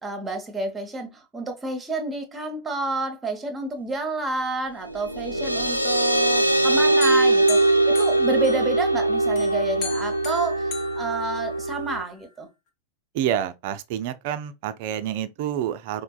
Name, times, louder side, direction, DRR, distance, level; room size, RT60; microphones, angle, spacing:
voice 1, 0.0-12.5, right 3 dB, 15° right, 0.9 m, -30 dB
sound 1, 4.9-12.0, right 2 dB, 90° left, 0.3 m, -22 dB
sound 2, 7.0-8.9 9.4-11.9, left 4 dB, 40° left, 1.0 m, -37 dB
voice 2, 13.1-16.0, right 10 dB, 50° right, 0.3 m, -28 dB
4.5 x 2.1 x 2.3 m
figure-of-eight pair, 90°, 0 cm